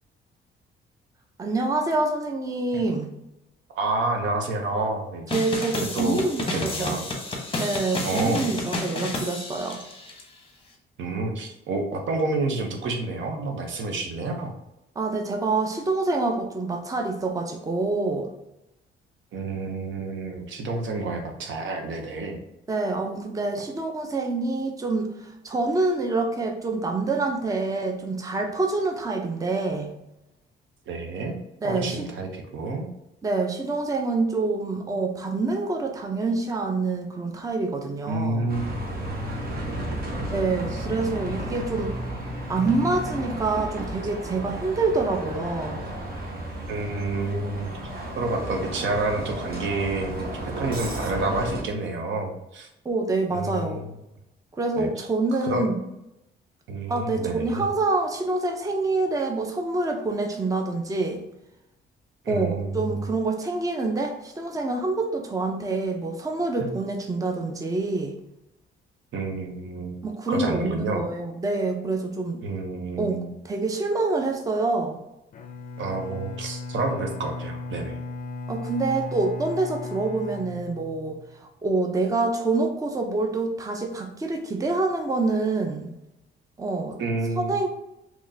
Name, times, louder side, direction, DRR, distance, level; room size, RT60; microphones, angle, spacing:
voice 1, 1.4-3.1 5.3-7.0 7.6-9.8 15.0-18.3 22.7-29.9 31.6-32.1 33.2-38.5 40.3-42.0 42.5-45.8 52.8-53.9 54.6-55.9 56.9-61.2 62.3-68.2 70.0-72.4 73.0-75.0 78.5-85.9 86.6-87.0 87.4-87.7, right 3 dB, 15° right, 3 dB, 0.6 m, -26 dB
voice 2, 3.7-5.3 5.8-6.2 6.5-7.0 8.0-8.4 11.0-14.5 19.3-22.4 30.9-31.4 31.6-32.9 38.1-38.7 40.1-40.3 40.7-40.8 46.7-47.7 48.2-50.3 50.6-52.7 53.3-53.9 54.8-55.1 55.4-55.7 56.7-57.7 62.2-63.1 66.6-66.7 69.1-70.0 70.3-71.0 72.4-73.3 75.8-78.0 87.0-87.6, right 3 dB, 70° right, 3 dB, 0.8 m, -29 dB
sound 1, 5.3-10.2, left 2 dB, 25° left, 0.8 m, -31 dB
Bus, 38.5-51.6, right 1 dB, 50° right, 1.1 m, -33 dB
Bowed string instrument, 75.3-81.4, left 3 dB, 45° left, 0.4 m, -36 dB
3.7 x 3.0 x 2.7 m, 0.89 s
cardioid pair, 90°, 20 cm